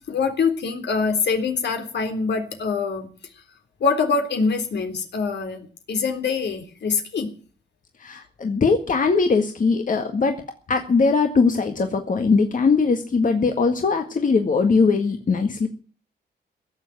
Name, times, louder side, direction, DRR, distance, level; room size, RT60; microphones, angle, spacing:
voice 1, 0.1-3.1 3.8-7.3, left 5 dB, 75° left, 6 dB, 3.6 m, -24 dB
voice 2, 8.0-10.3 10.7-15.7, left 4 dB, 45° left, 5 dB, 1.9 m, -20 dB
17.0 x 7.5 x 9.6 m, 0.40 s
cardioid pair, 95°, 18 cm